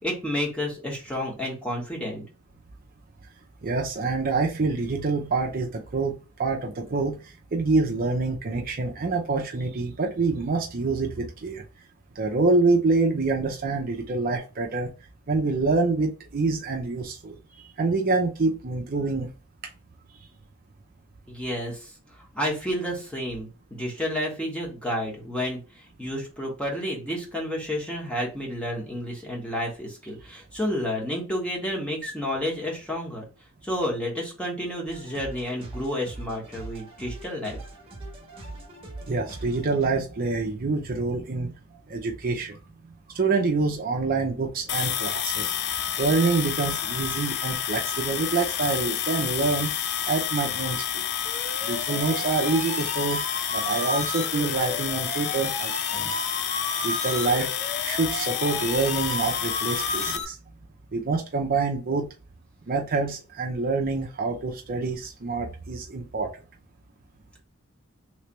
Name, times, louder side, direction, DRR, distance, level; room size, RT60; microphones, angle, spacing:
voice 1, 0.0-2.2 21.3-21.9 22.3-25.6 26.0-33.2 33.6-37.6, equal, 5° left, -2 dB, 1.3 m, -30 dB
voice 2, 3.6-11.6 12.2-14.9 15.3-19.3 20.2-20.3 39.1-41.5 41.9-42.6 43.1-49.7 50.1-51.1 51.6-53.2 53.5-56.1 56.8-57.5 57.8-60.4 60.9-62.1 62.7-66.3, right 3 dB, 45° right, 1 dB, 0.6 m, -26 dB
sound 1, 34.9-39.9, right 2 dB, 25° right, 1.2 m, -41 dB
sound 2, 44.7-60.2, left 10 dB, 50° left, 0.4 m, -29 dB
sound 3, 51.2-60.2, left 2 dB, 35° left, 0.8 m, -33 dB
3.2 x 3.2 x 3.0 m, 0.32 s
head